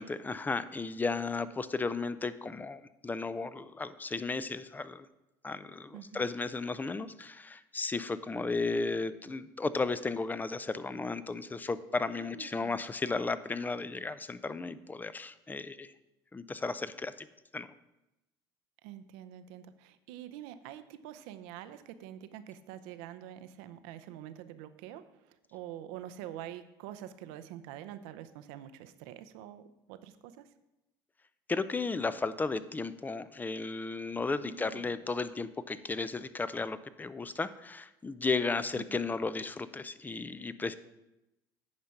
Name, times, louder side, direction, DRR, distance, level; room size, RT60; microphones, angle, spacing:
voice 1, 0.0-5.1 5.4-15.9 16.3-17.3 17.5-17.7 31.5-40.8, left 3 dB, 15° left, 15 dB, 0.5 m, -34 dB
voice 2, 5.9-6.2 12.2-12.8 18.8-30.5 34.4-34.9 38.7-39.0, right 11 dB, 80° right, 11 dB, 0.7 m, -46 dB
9.6 x 5.1 x 5.8 m, 0.95 s
supercardioid pair, 90°, 10 cm